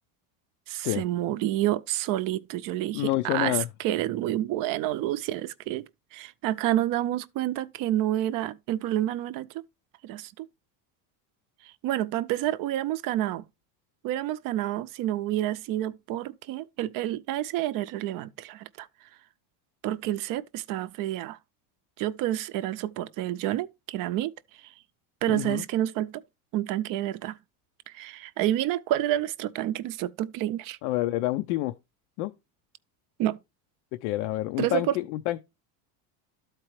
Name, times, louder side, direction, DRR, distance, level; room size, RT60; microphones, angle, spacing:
voice 1, 0.7-5.9 6.1-9.6 10.0-10.5 11.6-13.4 14.0-18.9 19.8-21.4 22.0-24.3 24.6-24.7 25.2-26.1 26.5-27.4 27.9-30.8 33.2-33.4 34.6-35.0, right 13 dB, 50° right, 0.5 m, -29 dB
voice 2, 2.9-3.7 25.3-25.6 30.8-31.7 32.2-32.3 33.9-35.4, left 16 dB, 80° left, 0.6 m, -28 dB
12.5 x 4.5 x 3.1 m
cardioid pair, 135°, 46 cm